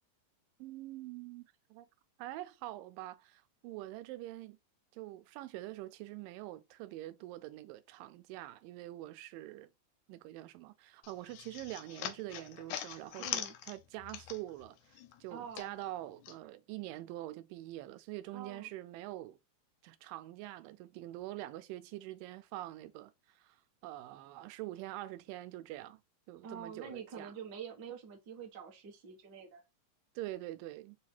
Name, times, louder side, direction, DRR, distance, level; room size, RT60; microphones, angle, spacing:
voice 1, 0.6-1.9 2.2-4.6 4.9-9.7 10.1-19.4 19.8-23.6 23.8-26.0 26.3-27.3 30.2-31.0, right 15 dB, 85° right, 2.2 m, -45 dB
sound 1, 11.0-14.7 15.0-16.4, left 11 dB, 80° left, 1.7 m, -42 dB
voice 2, 13.2-13.5 15.3-15.7 18.3-18.7 26.4-29.6, right 7 dB, 60° right, 1.0 m, -46 dB
5.2 x 2.4 x 4.1 m
omnidirectional pair, 3.9 m